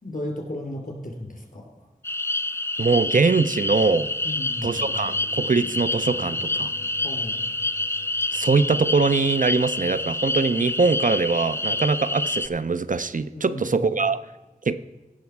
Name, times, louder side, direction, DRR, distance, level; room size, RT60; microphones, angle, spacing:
voice 1, 0.0-1.9 4.2-4.7 7.0-7.4 13.3-13.9, left 1 dB, 60° left, 1 dB, 3.3 m, -34 dB
sound 1, 2.0-12.5, left 2 dB, 15° left, 0.4 m, -27 dB
voice 2, 2.8-4.1 4.6-6.7 8.3-14.2 14.7-14.8, right 4 dB, 60° right, 13 dB, 0.5 m, -22 dB
sound 2, 4.6-10.2, left 2 dB, 40° left, 2.7 m, -45 dB
17.0 x 6.4 x 4.6 m, 1.1 s
wide cardioid pair, 60°, 15 cm